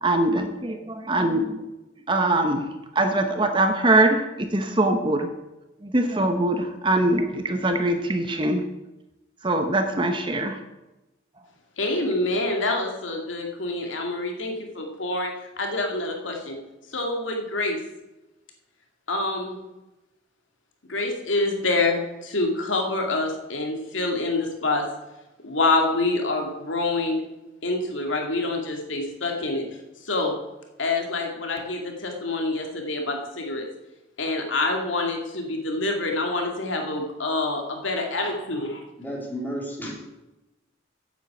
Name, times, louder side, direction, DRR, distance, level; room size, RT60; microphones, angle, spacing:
voice 1, 0.0-1.6 2.1-2.6 2.9-5.3 5.8-8.6 9.4-10.6, right 2 dB, 25° right, 6 dB, 0.9 m, -22 dB
voice 2, 11.8-16.6 16.9-17.8 19.1-19.6 20.9-24.8 25.4-27.2 27.6-29.6 30.1-30.3 30.8-33.7 34.2-38.8, left 2 dB, 80° left, 2 dB, 2.3 m, -26 dB
voice 3, 39.0-39.9, equal, 10° left, -3 dB, 3.6 m, -32 dB
9.3 x 8.1 x 7.9 m, 1.0 s
head